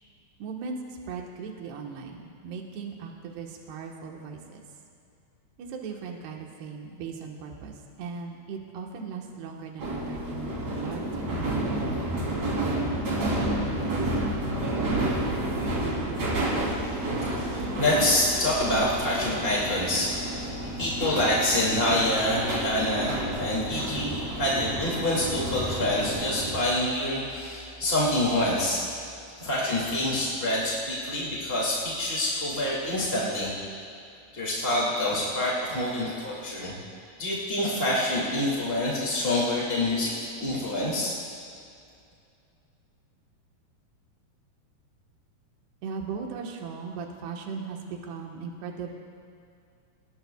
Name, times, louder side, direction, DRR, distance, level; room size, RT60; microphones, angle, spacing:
voice 1, 0.4-4.6 5.6-11.2 45.8-48.9, right 5 dB, 75° right, 0 dB, 3.4 m, -38 dB
sound 1, 9.8-26.6, right 1 dB, 40° right, 4.4 m, -30 dB
voice 2, 16.5-28.8 29.4-33.5 34.3-36.8 37.2-40.1 40.4-41.1, left 1 dB, 20° left, -6 dB, 1.8 m, -27 dB
28.5 x 20.0 x 2.4 m, 2.5 s
omnidirectional pair, 4.8 m